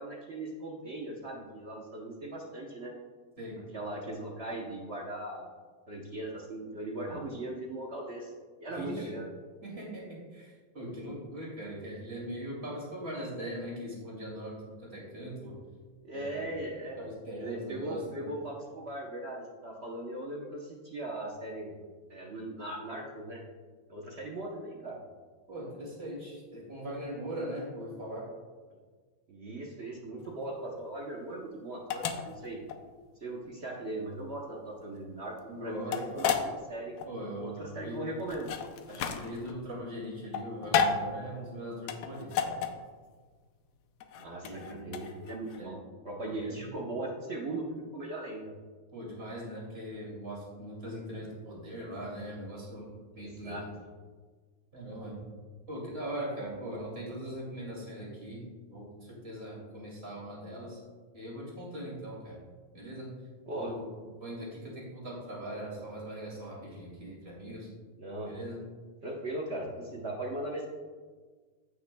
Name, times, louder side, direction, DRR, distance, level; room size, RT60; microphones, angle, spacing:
voice 1, 0.0-2.9 3.7-5.5 5.9-8.3 8.6-9.3 16.0-17.1 17.4-21.7 22.1-23.4 23.9-25.0 29.3-32.6 33.2-36.9 37.4-38.5 44.2-45.8 46.0-48.5 53.2-53.6 63.5-63.8 64.1-64.2 68.0-68.3 69.0-70.7, right 1 dB, 55° right, -2 dB, 0.7 m, -39 dB
voice 2, 8.7-9.1 9.6-15.6 16.1-16.6 17.0-18.3 25.5-28.3 35.5-36.3 37.1-38.0 38.9-42.6 44.4-45.1 45.6-45.7 46.2-46.7 48.9-53.7 54.7-55.3 55.7-58.5 58.7-60.8 61.1-62.4 62.7-63.1 63.5-63.9 64.2-67.7 68.3-68.6, equal, 30° right, -5 dB, 2.5 m, -40 dB
sound 1, 30.2-45.6, left 7 dB, 75° left, 0.9 m, -34 dB
15.0 x 5.9 x 2.2 m, 1.5 s
omnidirectional pair, 2.3 m